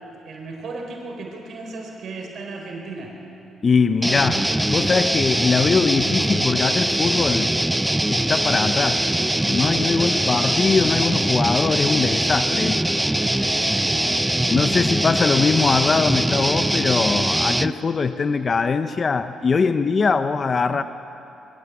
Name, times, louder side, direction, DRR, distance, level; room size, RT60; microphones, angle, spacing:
voice 1, 0.2-3.1 9.9-10.1 13.2-14.1, right 3 dB, 60° right, 1 dB, 4.2 m, -36 dB
voice 2, 3.6-7.6 8.1-9.1 9.5-13.0 14.5-20.8, left 5 dB, 40° left, 11 dB, 0.7 m, -22 dB
sound 1, 4.0-17.7, right 1 dB, 10° right, 0.5 m, -22 dB
21.5 x 16.0 x 8.4 m, 2.8 s
cardioid pair, 90°, 0 cm